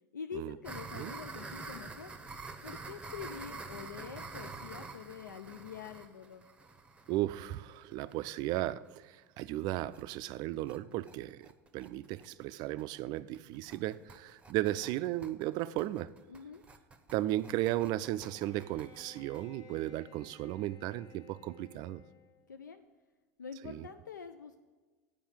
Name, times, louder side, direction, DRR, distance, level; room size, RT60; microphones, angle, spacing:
voice 1, 0.1-2.1 2.6-6.4 16.3-16.6 22.5-22.8 23.4-24.6, left 6 dB, 90° left, 0.4 m, -45 dB
sound 1, 0.6-8.3 8.7-8.8 9.0-9.1 9.4-9.5 9.8-10.0 10.3-19.4, right 3 dB, 10° right, 0.7 m, -47 dB
voice 2, 7.1-11.5 11.7-16.1 17.1-22.0 23.6-23.9, right 15 dB, 45° right, 0.3 m, -35 dB
Bowed string instrument, 18.1-22.5, left 4 dB, 45° left, 1.0 m, -58 dB
8.6 x 5.1 x 7.0 m
hypercardioid pair, 85°, 10 cm